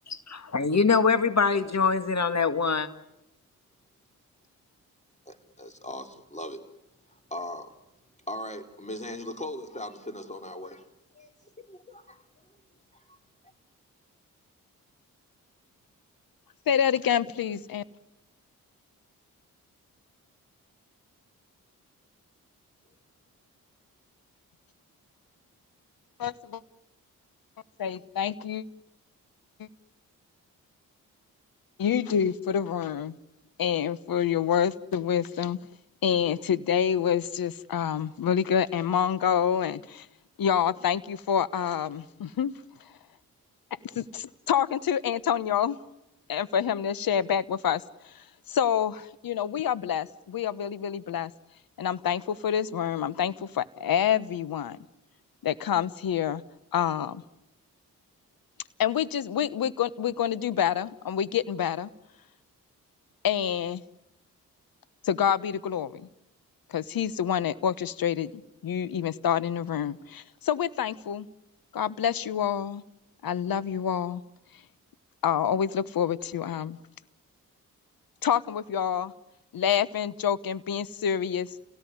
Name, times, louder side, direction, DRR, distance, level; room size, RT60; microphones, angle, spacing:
voice 1, 0.5-2.9, left 5 dB, 45° left, 2.0 m, -23 dB
voice 2, 5.3-6.6 7.1-7.7 8.3-10.9 11.1-11.3 11.6-12.2 12.9-13.2, left 1 dB, 20° left, 4.2 m, -39 dB
voice 3, 16.7-17.8 26.2-26.6 27.8-28.6 29.6-29.7 31.8-33.2 33.6-35.6 36.0-40.1 40.4-42.5 43.9-45.8 46.3-51.3 51.8-54.8 55.4-56.4 56.7-57.2 58.8-61.9 63.2-63.8 65.0-66.1 66.7-68.3 68.6-71.3 71.7-72.8 73.2-74.2 75.2-76.8 78.2-79.1 79.5-81.5, left 8 dB, 65° left, 1.2 m, -27 dB
29.5 x 17.5 x 9.7 m
supercardioid pair, 45°, 37 cm